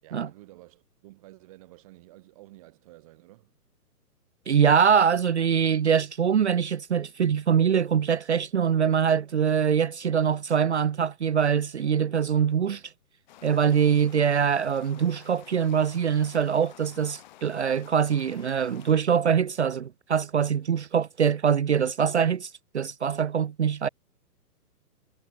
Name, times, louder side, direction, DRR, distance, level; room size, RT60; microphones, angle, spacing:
voice 1, 0.0-3.5 23.6-23.7, right 18 dB, 20° right, 3.5 m, -51 dB
voice 2, 4.5-12.8 13.4-23.9, right 7 dB, 45° right, 0.7 m, -23 dB
sound 1, 13.3-18.9, left 14 dB, 30° left, 4.9 m, -52 dB
hypercardioid pair, 170°, 47 cm